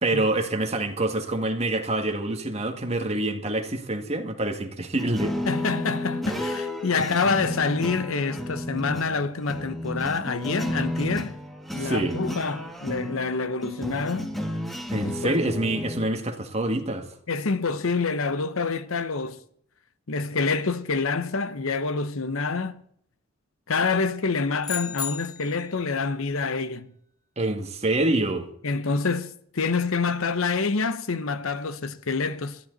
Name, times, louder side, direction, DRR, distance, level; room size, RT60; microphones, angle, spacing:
voice 1, 0.0-5.3 11.7-12.2 14.9-17.1 27.4-28.5, right 2 dB, 30° right, 2.0 m, -26 dB
sound 1, 5.0-16.1, left 1 dB, ahead, 1.8 m, -32 dB
voice 2, 5.5-11.3 11.7-14.4 15.0-15.4 17.3-19.4 20.1-22.8 23.7-26.9 28.6-32.6, left 4 dB, 65° left, 0.9 m, -27 dB
sound 2, 24.6-25.7, left 8 dB, 20° left, 0.7 m, -34 dB
21.0 x 14.5 x 4.1 m
head